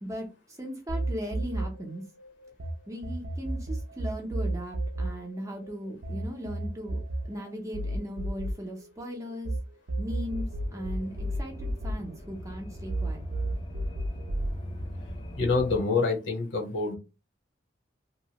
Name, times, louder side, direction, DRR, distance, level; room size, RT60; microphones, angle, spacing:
voice 1, 0.0-2.0 2.9-7.0 7.3-9.5 10.0-10.5 10.7-13.2, equal, 15° right, 1 dB, 0.6 m, -38 dB
sound 1, 0.9-2.7 3.0-9.6 9.9-12.6 12.9-14.5, right 1 dB, 85° right, 0.5 m, -32 dB
sound 2, 9.9-15.8, equal, 25° left, 0.5 m, -41 dB
voice 2, 15.3-17.0, left 4 dB, 70° left, 1 dB, 1.0 m, -26 dB
2.8 x 2.1 x 2.8 m, 0.29 s
head